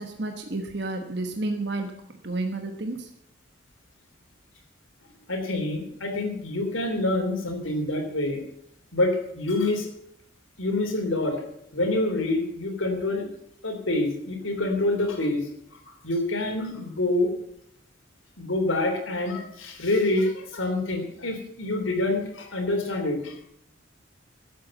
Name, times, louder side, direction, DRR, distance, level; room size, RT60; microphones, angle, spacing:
voice 1, 0.0-1.9 2.2-3.1, right 2 dB, 55° right, 4 dB, 1.2 m, -31 dB
voice 2, 5.3-8.4 8.9-9.9 10.6-11.4 11.7-13.2 13.6-15.5 15.7-15.8 16.0-17.3 18.4-23.3, left 2 dB, 90° left, 4 dB, 3.1 m, -26 dB
12.5 x 8.0 x 7.5 m, 0.73 s
head